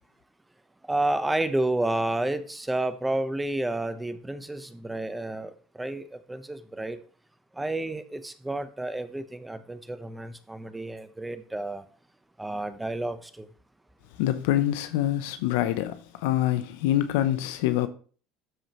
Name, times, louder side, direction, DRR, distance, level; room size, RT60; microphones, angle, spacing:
voice 1, 0.8-7.0 7.5-11.8 12.4-13.5, right 2 dB, 10° right, 0.9 m, -30 dB
voice 2, 14.2-17.9, left 13 dB, 75° left, 0.8 m, -25 dB
12.5 x 5.0 x 3.0 m
hypercardioid pair, 85°, 0 cm